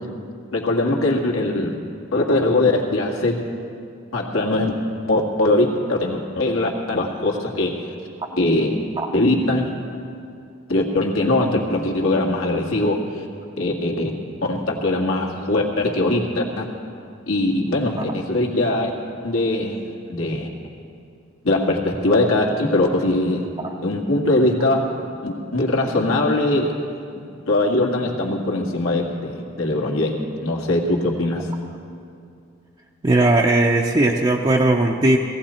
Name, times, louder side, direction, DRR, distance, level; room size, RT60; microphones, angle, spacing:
voice 1, 0.5-1.7 2.1-3.4 4.1-4.7 5.1-7.8 8.4-8.8 9.1-9.7 10.7-13.0 13.6-14.1 14.5-16.6 17.3-18.9 19.2-19.8 20.1-20.5 21.4-23.5 23.8-24.9 25.2-26.7 27.5-31.5, left 2 dB, 85° left, -1 dB, 1.9 m, -21 dB
voice 2, 33.0-35.2, right 2 dB, 25° right, -1 dB, 0.6 m, -18 dB
17.5 x 16.0 x 4.3 m, 2.5 s
head